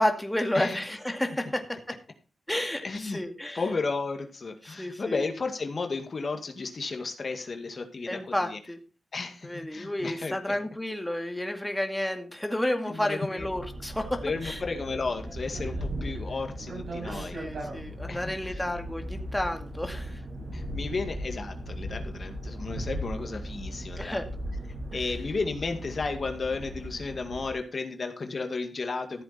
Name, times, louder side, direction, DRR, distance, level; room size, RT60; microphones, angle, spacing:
voice 1, 0.0-2.0 2.5-3.6 4.6-5.1 8.1-8.8 9.4-14.6 17.0-20.2 24.0-24.3, left 1 dB, 10° left, 5 dB, 2.2 m, -31 dB
voice 2, 2.8-3.2 3.5-8.6 9.1-10.6 12.8-13.5 14.2-17.4 18.1-18.6 20.5-24.2 24.9-29.2, left 4 dB, 55° left, 5 dB, 2.1 m, -33 dB
sound 1, 13.4-27.5, right 1 dB, 85° right, 7.1 m, -37 dB
14.5 x 7.9 x 4.3 m, 0.34 s
cardioid pair, 55°, 0 cm